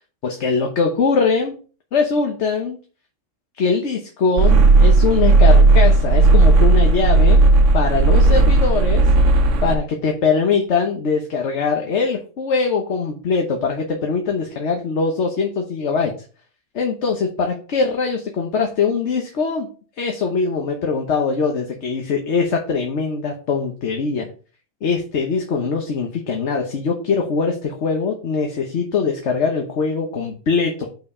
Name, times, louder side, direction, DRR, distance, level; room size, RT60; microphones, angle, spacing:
voice 1, 0.2-1.5 1.9-2.8 3.6-7.5 7.7-9.0 9.6-16.1 16.7-19.7 20.0-24.3 24.8-30.9, left 5 dB, 65° left, 2 dB, 1.3 m, -22 dB
sound 1, 4.4-9.8, right 3 dB, 75° right, 1.1 m, -13 dB
5.5 x 4.6 x 5.3 m, 0.38 s
omnidirectional pair, 1.3 m